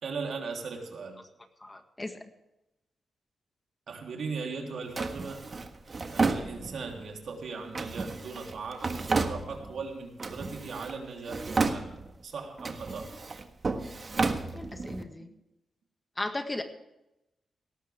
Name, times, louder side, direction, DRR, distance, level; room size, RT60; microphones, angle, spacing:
voice 1, 0.0-1.2 3.9-5.6 6.1-11.9 12.2-13.1, right 4 dB, 70° right, 2 dB, 3.2 m, -38 dB
voice 2, 1.6-2.2 14.5-15.3 16.2-16.6, left 2 dB, 20° left, 6 dB, 1.8 m, -36 dB
Drawer open or close, 5.0-7.0 7.7-9.8 10.2-11.0 11.2-12.2 12.6-15.0, right 3 dB, 45° right, 1.5 m, -32 dB
18.5 x 13.0 x 3.4 m, 0.90 s
cardioid pair, 70°, 0 cm